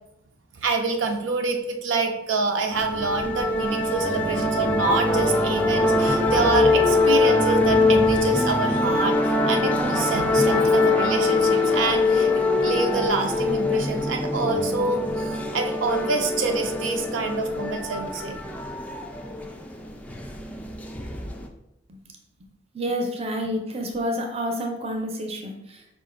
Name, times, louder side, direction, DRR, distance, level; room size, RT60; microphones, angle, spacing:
voice 1, 0.5-12.3 12.6-18.4, right 3 dB, 75° right, 4 dB, 0.5 m, -26 dB
sound 1, 2.7-21.5, left 2 dB, 10° left, 0.3 m, -23 dB
voice 2, 22.7-25.8, equal, 30° right, 3 dB, 0.6 m, -29 dB
5.0 x 2.5 x 3.7 m, 0.85 s
head